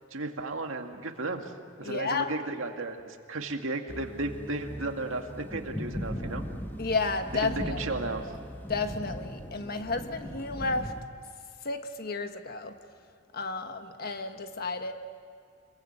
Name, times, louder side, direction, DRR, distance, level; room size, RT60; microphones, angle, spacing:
voice 1, 0.1-1.5 1.8-6.4 7.4-8.3, right 2 dB, 85° right, 4 dB, 2.0 m, -34 dB
voice 2, 1.8-2.3 6.8-7.8 8.7-10.9 11.6-12.8 13.3-14.9, left 3 dB, 50° left, 7 dB, 1.4 m, -32 dB
sound 1, 3.9-11.0, equal, 10° left, 1.2 m, -39 dB
27.0 x 22.0 x 8.2 m, 2.2 s
head